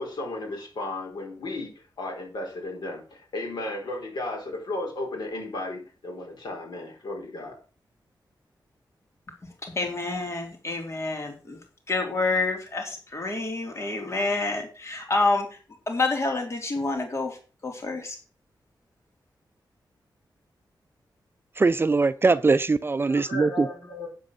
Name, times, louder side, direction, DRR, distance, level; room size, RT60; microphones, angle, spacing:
voice 1, 0.0-7.6 23.0-24.1, left 2 dB, 65° left, 4.7 m, -34 dB
voice 2, 9.6-11.6 11.9-15.6 15.9-17.4 17.6-18.2, left 3 dB, 35° left, 3.0 m, -28 dB
voice 3, 21.6-23.7, right 3 dB, 30° right, 0.5 m, -21 dB
9.5 x 7.7 x 6.3 m
wide cardioid pair, 160°, 8 cm